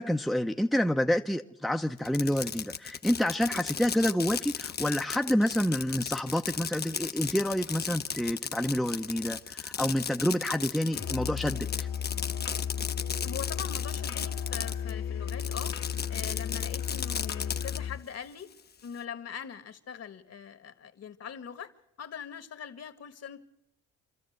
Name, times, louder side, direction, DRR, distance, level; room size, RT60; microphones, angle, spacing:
voice 1, 0.0-11.9, equal, ahead, 0.7 m, -28 dB
Fireworks, 2.0-14.9 15.3-17.8, left 7 dB, 35° left, 0.7 m, -36 dB
Musical instrument, 10.9-18.1, left 8 dB, 80° left, 1.9 m, -34 dB
voice 2, 13.2-18.5 18.8-21.7 22.0-23.4, left 8 dB, 55° left, 1.6 m, -42 dB
27.5 x 13.0 x 8.0 m
cardioid pair, 90°, 30 cm